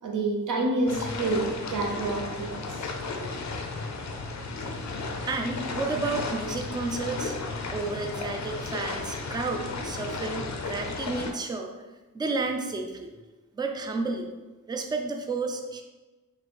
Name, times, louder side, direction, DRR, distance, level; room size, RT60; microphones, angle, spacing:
voice 1, 0.0-2.8, right 2 dB, 60° right, 1 dB, 0.7 m, -28 dB
sound 1, 0.9-11.3, left 3 dB, 55° left, 0.5 m, -34 dB
voice 2, 5.3-7.4 7.7-11.7 12.1-13.1 13.5-14.3 14.7-15.8, right 3 dB, 15° right, 3 dB, 0.3 m, -31 dB
3.1 x 2.8 x 4.2 m, 1.2 s
wide cardioid pair, 135°, 34 cm